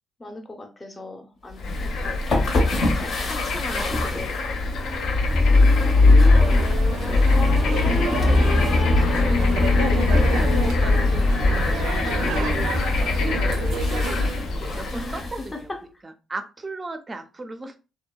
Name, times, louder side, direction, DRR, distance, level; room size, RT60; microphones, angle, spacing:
voice 1, 0.2-4.4 6.4-6.7 7.1-7.3 12.1-12.3 14.9-15.8, left 2 dB, 25° left, 0.6 m, -39 dB
Bird / Frog, 1.6-15.4, left 3 dB, 75° left, 0.4 m, -30 dB
sound 1, 1.6-15.5, left 2 dB, 60° left, 0.8 m, -21 dB
voice 2, 3.7-4.3 6.2-6.7 7.3-9.4 9.9-12.8 13.1-15.7 16.0-17.8, right 2 dB, 25° right, 0.4 m, -36 dB
sound 2, 6.4-14.4, right 5 dB, 90° right, 0.4 m, -31 dB
2.6 x 2.0 x 2.3 m
cardioid pair, 90°, 0 cm